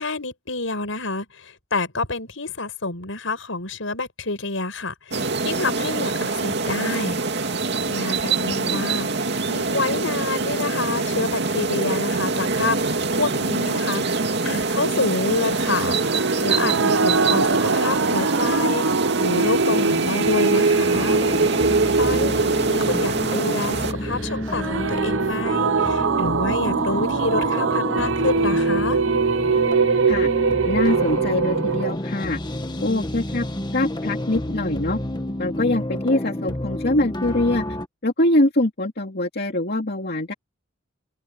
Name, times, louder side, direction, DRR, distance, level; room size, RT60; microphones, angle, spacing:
voice 1, 0.0-7.2 7.9-9.1 9.4-14.0 14.4-16.0 16.4-18.8 19.2-21.2 22.0-29.0, left 3 dB, 85° left, 5.5 m, -28 dB
sound 1, 5.1-23.9, right 3 dB, 60° right, 2.5 m, -25 dB
voice 2, 8.3-8.9 22.1-22.4 30.1-30.3 30.7-32.4 32.8-33.5 33.7-35.0 35.4-37.6 38.0-40.3, left 1 dB, 55° left, 2.4 m, -23 dB
sound 2, 15.9-31.9, right 4 dB, 80° right, 0.8 m, -22 dB
sound 3, 20.9-37.9, left 1 dB, 20° left, 1.4 m, -30 dB
open air
head